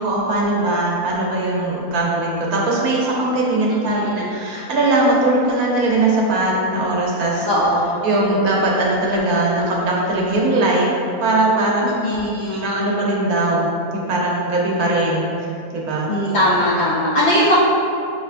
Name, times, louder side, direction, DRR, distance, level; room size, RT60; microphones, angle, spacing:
voice 1, 0.0-7.5 8.0-10.9 11.2-11.8 12.5-15.3 15.7-16.1, right 2 dB, 75° right, -3 dB, 1.2 m, -20 dB
voice 2, 3.7-4.3 7.4-8.1 11.8-12.8 16.1-17.6, equal, 70° left, -6 dB, 0.6 m, -20 dB
6.4 x 2.3 x 2.4 m, 2.7 s
omnidirectional pair, 1.6 m